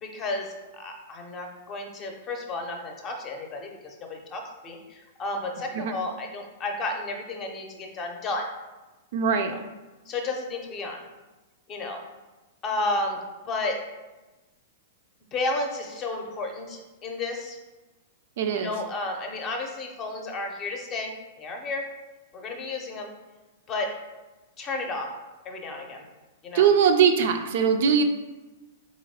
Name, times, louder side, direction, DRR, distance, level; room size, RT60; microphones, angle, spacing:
voice 1, 0.0-8.5 9.5-9.6 10.1-11.0 11.7-12.0 12.6-13.2 13.5-13.8 15.3-17.6 18.5-21.9 22.3-23.1 23.7-23.9 24.6-25.1 25.4-26.0 26.4-26.7, left 2 dB, 30° left, 2 dB, 0.6 m, -32 dB
voice 2, 9.1-9.5 18.4-18.7 26.5-28.0, right 7 dB, 55° right, 6 dB, 0.3 m, -21 dB
3.9 x 2.9 x 2.7 m, 1.1 s
figure-of-eight pair, 105°, 0 cm